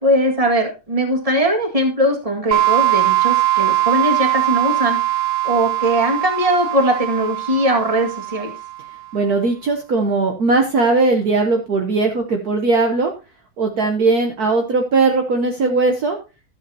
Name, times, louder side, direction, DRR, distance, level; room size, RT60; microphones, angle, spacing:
voice 1, 0.0-5.0 5.4-8.5, right 1 dB, 20° right, 2 dB, 2.0 m, -20 dB
sound 1, 2.5-9.0, right 15 dB, 80° right, 1.5 m, -20 dB
voice 2, 9.1-13.1 13.6-16.2, right 3 dB, 55° right, 3 dB, 1.5 m, -18 dB
13.5 x 8.0 x 2.8 m, 0.31 s
omnidirectional pair, 2.1 m